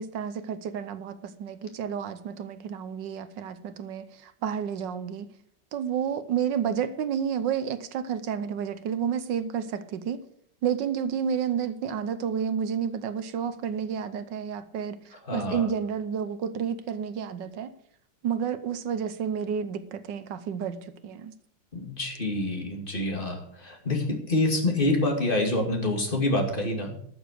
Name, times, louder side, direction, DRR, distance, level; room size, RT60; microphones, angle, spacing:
voice 1, 0.0-5.3 5.7-10.2 10.6-15.0 15.3-17.7 18.2-21.3, right 7 dB, 75° right, 12 dB, 1.5 m, -30 dB
voice 2, 15.3-15.7 21.7-26.9, left 2 dB, 30° left, 2 dB, 2.6 m, -27 dB
12.5 x 7.1 x 6.7 m, 0.67 s
omnidirectional pair, 2.0 m